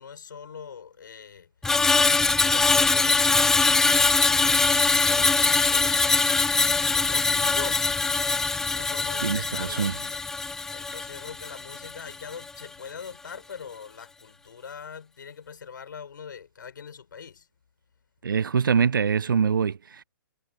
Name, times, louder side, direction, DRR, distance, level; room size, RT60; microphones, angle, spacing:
voice 1, 0.0-1.5 2.4-6.3 6.9-7.9 8.7-10.2 10.7-17.5, left 6 dB, 65° left, 5.4 m, -43 dB
Screech, 1.6-12.0 12.3-12.6, left 3 dB, 5° left, 0.3 m, -22 dB
voice 2, 9.2-9.9 18.2-20.0, right 6 dB, 65° right, 0.8 m, -24 dB
figure-of-eight pair, 125°, 12 cm